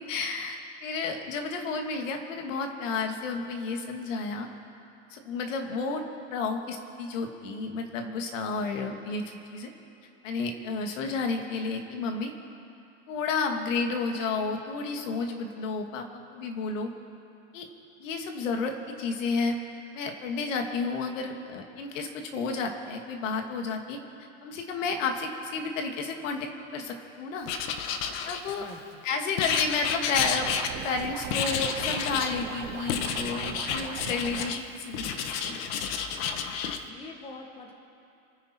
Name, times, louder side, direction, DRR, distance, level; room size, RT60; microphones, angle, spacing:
voice 1, 0.0-4.5 5.1-9.7 10.2-12.3 13.1-16.9 17.5-17.7 18.0-19.6 19.9-24.0 24.4-27.5 28.2-28.7 29.0-30.5 30.7-35.6, left 4 dB, 80° left, 4 dB, 2.2 m, -31 dB
Writing, 27.5-28.8 29.4-31.0 31.3-32.4 32.9-34.6 34.9-36.8, left 7 dB, 45° left, 1.1 m, -30 dB
voice 2, 28.6-29.0 36.9-37.7, left 3 dB, 15° left, 3 dB, 1.1 m, -44 dB
sound 1, 30.2-34.5, right 11 dB, 50° right, 1.2 m, -39 dB
28.5 x 9.7 x 4.5 m, 2.7 s
supercardioid pair, 170°, 38 cm